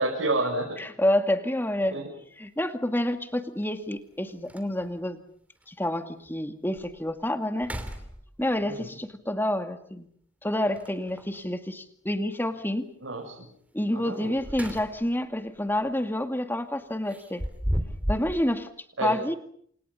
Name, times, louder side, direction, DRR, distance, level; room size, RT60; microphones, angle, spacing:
voice 1, 0.0-0.8 1.9-2.0 8.6-8.9 13.0-13.4 13.9-14.3 19.0-19.2, right 2 dB, 70° right, -1 dB, 6.7 m, -29 dB
voice 2, 0.8-2.0 2.4-5.2 5.7-7.7 8.4-10.1 10.4-12.9 13.7-17.4 18.1-18.7 19.0-19.3, left 1 dB, 10° left, 7 dB, 2.2 m, -28 dB
sound 1, 1.8-1.9 3.6-3.7 4.1-4.2 4.5-5.0 5.6-5.7 6.3-6.4 6.8-7.1 7.5-8.6 10.7-11.4 14.1-15.2 15.6-15.8 17.1-18.4, equal, 5° right, 2.9 m, -34 dB
29.5 x 27.5 x 5.7 m, 0.63 s
head